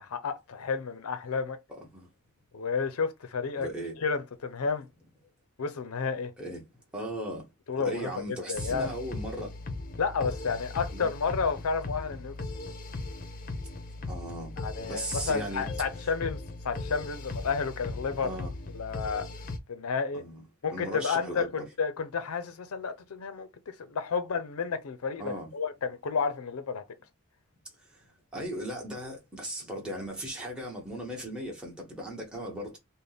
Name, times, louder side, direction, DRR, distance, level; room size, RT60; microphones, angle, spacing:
voice 1, 0.0-1.6 2.5-3.7 4.0-4.9 5.6-6.3 7.7-8.9 10.0-12.3 14.6-18.4 18.7-19.3 19.7-20.2 20.6-26.8, left 5 dB, 90° left, 0.5 m, -31 dB
voice 2, 3.5-3.9 6.4-6.6 6.9-7.5 7.8-9.6 10.9-11.1 14.1-15.6 18.2-18.5 20.1-20.4 20.7-21.5 25.2-25.5 27.8-32.8, equal, 5° right, 1.0 m, -37 dB
sound 1, 8.5-19.6, left 2 dB, 40° left, 0.6 m, -38 dB
3.4 x 2.1 x 3.9 m
head